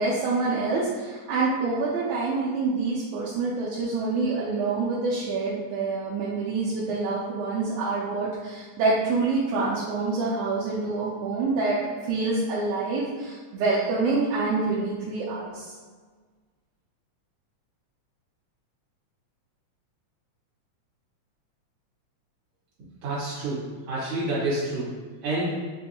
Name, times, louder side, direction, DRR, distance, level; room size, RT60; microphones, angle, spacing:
voice 1, 0.0-11.8 12.1-15.7, right 3 dB, 80° right, -7 dB, 2.0 m, -26 dB
voice 2, 23.0-25.0 25.2-25.6, right 2 dB, 55° right, -8 dB, 2.4 m, -28 dB
5.5 x 2.6 x 2.8 m, 1.4 s
omnidirectional pair, 3.4 m